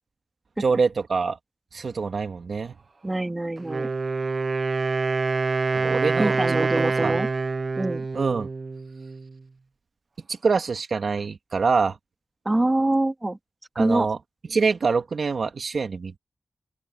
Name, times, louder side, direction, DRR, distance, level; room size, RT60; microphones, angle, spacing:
voice 1, 0.6-1.4 1.7-2.7 5.7-7.2 8.1-8.5 10.4-12.0 13.8-14.2 14.5-16.2, right 4 dB, 80° right, 2.1 m, -25 dB
voice 2, 3.0-3.9 6.2-7.3 7.8-8.0 12.4-13.4 13.7-14.1, right 2 dB, 25° right, 3.0 m, -24 dB
Wind instrument woodwind instrument, 3.6-9.3, right 4 dB, 60° right, 0.9 m, -26 dB
open air
cardioid pair, 60°, 0 cm